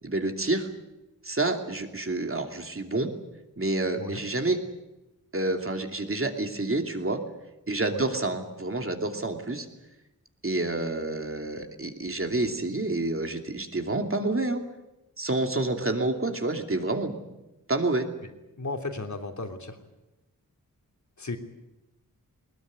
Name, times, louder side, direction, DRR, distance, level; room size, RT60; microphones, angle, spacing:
voice 1, 0.0-0.7 1.2-3.1 3.6-4.6 5.3-7.2 7.7-9.7 10.4-14.6 15.2-17.1 17.7-18.1, right 2 dB, 35° right, 4 dB, 2.8 m, -28 dB
voice 2, 18.6-19.8 21.2-21.4, left 3 dB, 55° left, 4 dB, 3.1 m, -34 dB
20.5 x 20.5 x 9.6 m, 1.0 s
wide cardioid pair, 85°, 36 cm